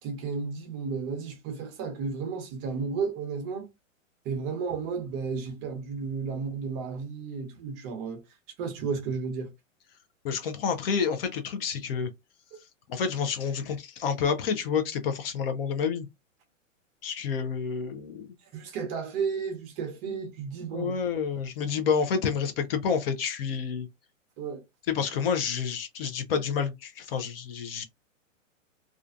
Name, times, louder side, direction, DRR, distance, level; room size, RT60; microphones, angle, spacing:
voice 1, 0.0-3.7 4.2-8.2 8.6-9.5 18.5-20.9 24.4-24.6, right 5 dB, 25° right, 0.7 m, -33 dB
voice 2, 10.2-12.1 12.9-16.1 17.0-18.3 20.7-23.9 24.9-27.8, left 6 dB, 45° left, 0.5 m, -29 dB
2.4 x 2.3 x 2.5 m
hypercardioid pair, 135°, 39 cm